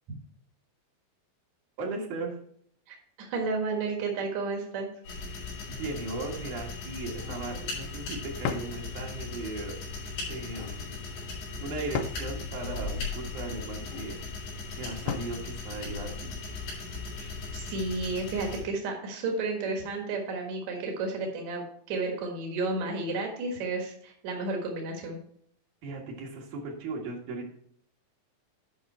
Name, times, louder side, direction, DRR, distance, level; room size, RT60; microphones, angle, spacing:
voice 1, 1.8-2.3 5.7-9.8 10.3-11.0 11.6-14.2 14.8-16.4 25.8-27.5, right 3 dB, 60° right, -1 dB, 2.2 m, -37 dB
voice 2, 2.9-4.9 17.2-25.2, right 3 dB, 75° right, 1 dB, 1.6 m, -32 dB
sound 1, 5.0-18.6, left 4 dB, 60° left, 6.0 m, -38 dB
sound 2, 7.1-7.5 8.4-8.8 10.3-10.7 11.9-12.3 13.7-14.1 15.1-15.4, left 7 dB, 90° left, 2.4 m, -35 dB
11.0 x 5.5 x 4.3 m, 0.65 s
omnidirectional pair, 5.7 m